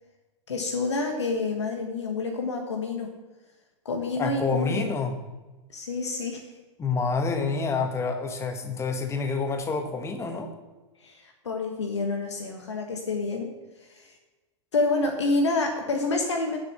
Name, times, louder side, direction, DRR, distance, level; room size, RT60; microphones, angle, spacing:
voice 1, 0.5-3.1 3.8-4.9 5.7-6.5 11.0-13.5 13.8-14.1 14.7-16.6, left 3 dB, 65° left, 3 dB, 1.4 m, -28 dB
voice 2, 4.2-5.1 6.8-10.5, left 4 dB, 15° left, 6 dB, 1.3 m, -28 dB
9.8 x 7.4 x 7.0 m, 1.2 s
figure-of-eight pair, 95°, 16 cm